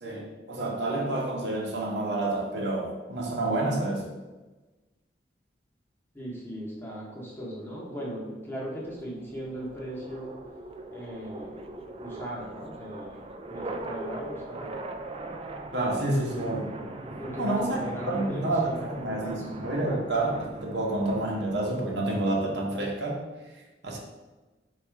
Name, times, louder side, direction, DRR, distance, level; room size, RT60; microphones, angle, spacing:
voice 1, 0.0-4.1 15.7-16.7 17.4-17.8 18.1-23.2 23.8-24.0, right 2 dB, 70° right, -1 dB, 0.8 m, -29 dB
voice 2, 6.1-10.3 10.9-11.6 12.0-13.2 13.5-14.9 17.2-18.7 19.2-19.4 19.9-20.0, equal, 10° left, -5 dB, 0.9 m, -38 dB
sound 1, 8.8-21.8, right 2 dB, 35° right, 0.3 m, -40 dB
4.1 x 2.4 x 4.6 m, 1.2 s
head